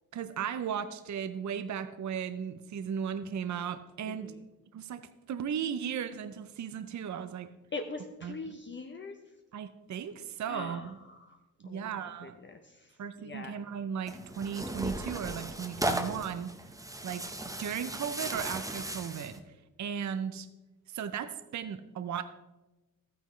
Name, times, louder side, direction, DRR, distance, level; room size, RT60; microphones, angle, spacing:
voice 1, 0.1-4.3 4.7-7.5 8.2-8.5 9.5-11.0 11.6-12.4 13.0-16.7 17.0-20.5 20.9-22.2, right 8 dB, 55° right, 11 dB, 0.6 m, -36 dB
voice 2, 7.7-9.1 10.5-10.9 11.2-11.4 11.7-11.9 12.5-12.8 13.2-13.5, left 3 dB, 35° left, 5 dB, 0.7 m, -41 dB
Tearing, 14.1-19.4, right 1 dB, 10° right, 0.9 m, -36 dB
13.5 x 9.1 x 3.1 m, 1.1 s
wide cardioid pair, 105°, 34 cm